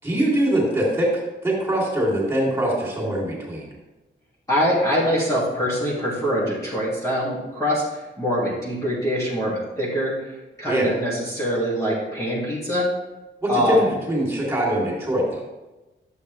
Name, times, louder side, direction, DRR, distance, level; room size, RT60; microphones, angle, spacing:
voice 1, 0.0-1.1 1.4-3.7 10.7-10.9 13.4-15.4, right 1 dB, 10° right, -5 dB, 3.4 m, -22 dB
voice 2, 4.5-12.9 13.5-13.9, equal, 15° left, -9 dB, 2.5 m, -24 dB
12.0 x 7.7 x 3.4 m, 1.1 s
wide cardioid pair, 160°, 20 cm